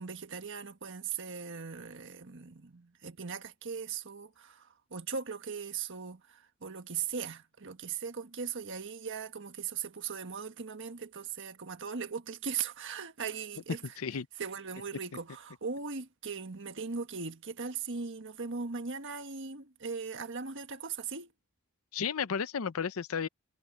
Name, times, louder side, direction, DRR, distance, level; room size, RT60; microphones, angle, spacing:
voice 1, 0.0-14.0 14.4-21.3, right 6 dB, 60° right, 1.5 m, -39 dB
voice 2, 21.9-23.3, left 6 dB, 80° left, 0.6 m, -33 dB
head